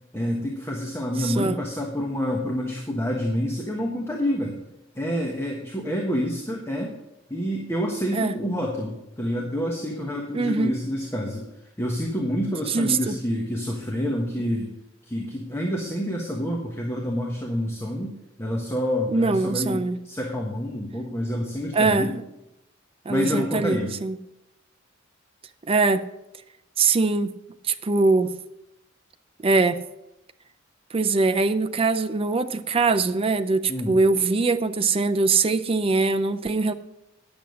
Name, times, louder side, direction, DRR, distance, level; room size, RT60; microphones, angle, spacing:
voice 1, 0.1-4.6 4.9-6.9 7.3-11.5 11.8-14.7 15.1-18.1 18.4-22.1 23.1-23.9 33.7-34.0, equal, 15° left, -1 dB, 1.3 m, -28 dB
voice 2, 1.2-1.6 8.1-8.3 10.3-10.7 12.7-13.2 19.1-20.0 21.7-22.2 23.1-24.2 25.7-26.0 26.8-27.3 27.6-28.3 29.4-29.8 30.9-36.7, right 3 dB, 30° right, 9 dB, 0.5 m, -22 dB
10.0 x 7.1 x 6.4 m, 0.91 s
head